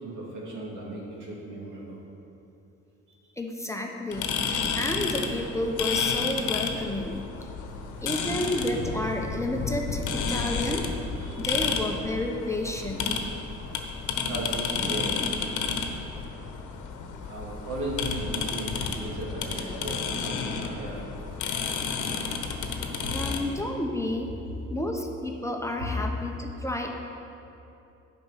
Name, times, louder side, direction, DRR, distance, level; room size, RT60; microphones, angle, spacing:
voice 1, 0.0-2.0 3.1-3.2 7.6-8.1 11.2-11.6 13.8-13.9 14.2-15.2 16.4-16.5 17.2-21.0, right 2 dB, 85° right, -4 dB, 2.3 m, -37 dB
voice 2, 3.4-7.2 8.0-10.9 11.4-13.2 23.1-24.3 24.7-26.9, left 1 dB, 10° left, 2 dB, 0.8 m, -31 dB
sound 1, 4.1-23.4, left 5 dB, 80° left, 1.0 m, -31 dB
9.4 x 5.2 x 6.5 m, 2.8 s
cardioid pair, 90°, 30 cm